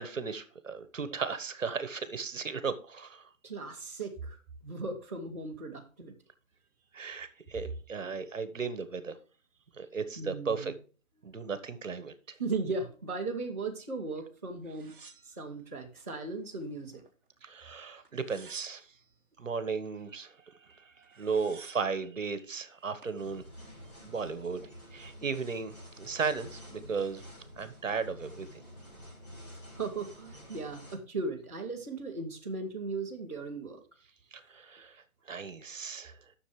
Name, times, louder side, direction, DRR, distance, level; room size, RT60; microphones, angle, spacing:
voice 1, 0.0-3.3 6.9-9.2 9.7-10.7 11.2-12.4 17.4-18.9 19.4-23.4 24.0-27.2 27.6-28.5 34.3-36.2, right 5 dB, 60° right, 1.3 m, -36 dB
voice 2, 3.4-4.4 4.6-6.1 10.2-10.7 12.4-14.9 15.4-17.0 29.7-33.8, right 3 dB, 10° right, 0.9 m, -37 dB
sound 1, 14.7-16.1 16.5-17.3 18.1-19.1 20.7-20.8 21.0-22.0 22.7-23.2, right 5 dB, 35° right, 1.2 m, -52 dB
sound 2, 23.1-31.0, equal, 30° left, 3.9 m, -49 dB
11.5 x 6.6 x 3.1 m
hypercardioid pair, 175°, 42 cm